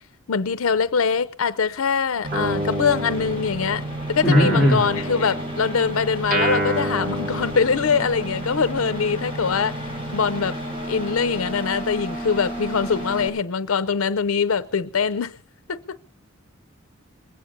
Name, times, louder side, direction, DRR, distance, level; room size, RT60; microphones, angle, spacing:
voice 1, 0.3-10.6 10.9-15.3 15.7-16.0, left 5 dB, 75° left, 0.6 m, -23 dB
sound 1, 2.2-13.3, right 1 dB, 25° right, 7.0 m, -32 dB
Guitar, 2.3-3.8 4.3-8.2, right 1 dB, 40° right, 3.4 m, -29 dB
voice 2, 4.2-4.8, equal, ahead, 2.8 m, -17 dB
21.0 x 8.7 x 6.8 m
head